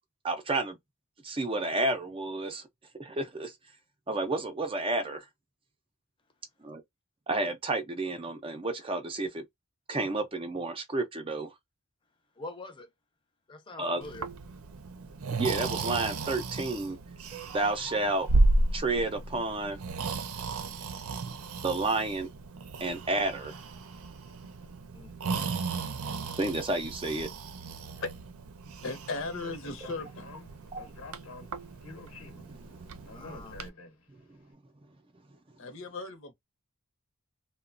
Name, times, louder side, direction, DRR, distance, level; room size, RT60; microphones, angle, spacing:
voice 1, 0.2-0.8 1.2-2.6 3.0-3.5 4.1-5.2 6.6-6.8 7.3-9.4 9.9-11.5 13.8-14.0 15.3-17.0 17.3-18.4 18.7-19.8 21.6-22.3 22.8-23.5 26.4-27.3 30.7-30.9 32.5-32.6, right 2 dB, 25° right, 0.4 m, -31 dB
voice 2, 12.4-12.9 13.5-14.3 24.9-25.2 33.1-33.6, left 2 dB, 20° left, 0.6 m, -44 dB
Breathing, 14.0-33.7, right 2 dB, 75° right, 0.5 m, -34 dB
voice 3, 28.8-30.3 35.6-36.3, left 3 dB, 60° left, 0.8 m, -36 dB
Speech, 29.2-34.3, left 3 dB, 80° left, 1.1 m, -49 dB
2.9 x 2.1 x 2.4 m
head